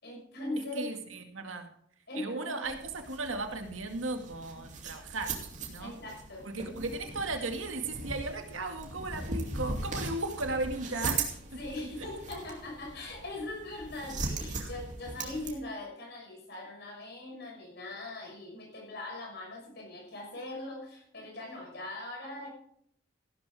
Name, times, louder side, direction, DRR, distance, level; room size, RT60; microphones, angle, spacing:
voice 1, 0.0-0.9 2.1-2.7 4.5-4.7 5.8-6.9 11.5-22.5, left 2 dB, 55° left, 1 dB, 5.9 m, -41 dB
voice 2, 0.8-1.7 2.2-5.4 5.7-6.0 6.5-11.3 11.8-12.1 14.6-14.7, right 2 dB, 90° right, 5 dB, 2.1 m, -36 dB
sound 1, 2.6-15.5, right 3 dB, 40° right, 2.6 m, -39 dB
15.5 x 12.0 x 3.5 m, 0.67 s
head